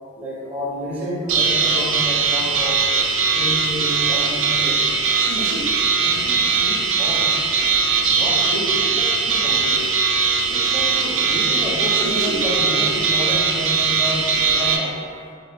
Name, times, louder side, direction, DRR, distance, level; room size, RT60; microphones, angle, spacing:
voice 1, 0.1-2.8 3.3-4.8 5.4-5.5 6.0-7.3 8.1-9.8 10.5-15.0, equal, 10° right, -7 dB, 0.5 m, -29 dB
sound 1, 1.3-14.8, right 5 dB, 75° right, 0.4 m, -20 dB
3.2 x 2.0 x 3.1 m, 2.3 s
head